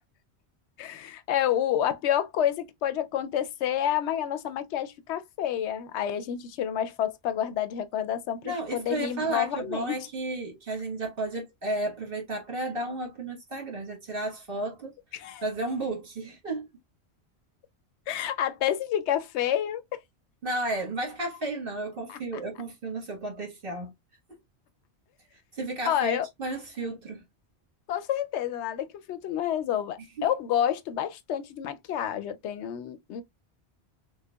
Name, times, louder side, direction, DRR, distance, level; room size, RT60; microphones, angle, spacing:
voice 1, 0.8-10.1 15.1-15.4 18.1-20.0 22.1-22.4 25.8-26.3 27.9-33.2, left 10 dB, 80° left, 0.9 m, -29 dB
voice 2, 8.4-14.9 15.4-16.7 20.4-23.9 25.3-27.2 30.2-30.3, right 2 dB, 55° right, 1.5 m, -33 dB
6.2 x 2.2 x 2.2 m
omnidirectional pair, 1.1 m